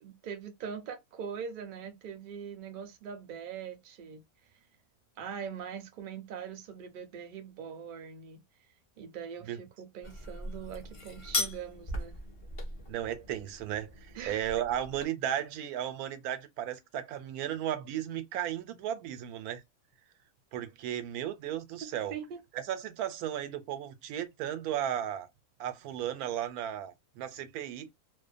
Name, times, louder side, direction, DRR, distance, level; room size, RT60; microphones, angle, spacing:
voice 1, 0.0-4.2 4.5-4.6 5.2-8.4 9.0-12.2 14.1-14.4 21.8-22.4, right 7 dB, 55° right, 0.6 m, -42 dB
sound 1, 10.0-15.1, left 2 dB, 30° left, 0.6 m, -38 dB
voice 2, 12.9-19.6 20.5-22.1 22.7-25.3 25.6-27.9, right 10 dB, 85° right, 1.1 m, -35 dB
2.6 x 2.1 x 2.4 m
omnidirectional pair, 1.5 m